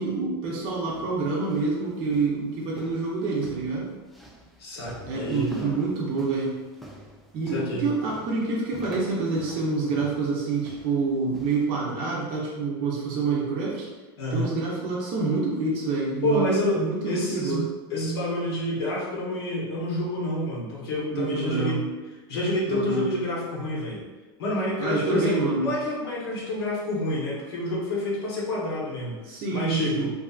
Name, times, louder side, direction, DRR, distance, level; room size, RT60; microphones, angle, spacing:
voice 1, 0.0-3.9 5.0-6.6 7.3-13.9 14.3-17.6 21.1-21.8 22.7-23.1 24.8-25.7 29.2-30.1, right 4 dB, 45° right, -5 dB, 0.6 m, -27 dB
sound 1, 0.6-11.8, equal, ahead, 0.3 m, -48 dB
voice 2, 4.6-5.8 7.5-7.9 14.2-14.5 16.2-21.8 22.3-24.0 24.4-29.2 29.5-30.1, left 1 dB, 85° left, -4 dB, 0.9 m, -28 dB
2.6 x 2.5 x 2.3 m, 1.2 s
supercardioid pair, 135°, 13 cm